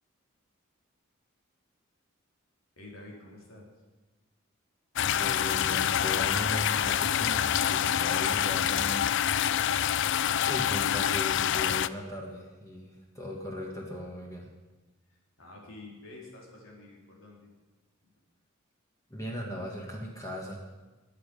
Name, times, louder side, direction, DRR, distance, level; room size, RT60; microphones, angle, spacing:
voice 1, 2.8-3.7 15.1-17.5 18.0-18.1, left 2 dB, 75° left, -2 dB, 3.8 m, -49 dB
sound 1, 5.0-11.9, left 10 dB, 60° left, 0.4 m, -26 dB
voice 2, 5.0-9.1 10.5-14.5 19.1-20.6, equal, 15° left, -1 dB, 1.8 m, -38 dB
22.0 x 8.6 x 5.4 m, 1.2 s
head